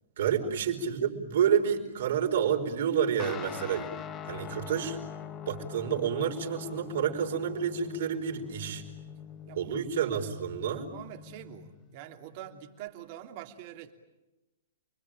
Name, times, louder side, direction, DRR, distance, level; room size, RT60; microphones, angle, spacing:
voice 1, 0.2-3.9 4.2-5.0 5.5-8.8 9.5-10.9, right 8 dB, 65° right, 2 dB, 4.8 m, -29 dB
Guitar, 3.2-12.9, left 8 dB, 25° left, 1.3 m, -44 dB
voice 2, 9.5-9.8 10.7-13.9, right 12 dB, 45° right, 4 dB, 3.2 m, -45 dB
29.5 x 21.5 x 9.1 m, 1.0 s
hypercardioid pair, 130°, 0 cm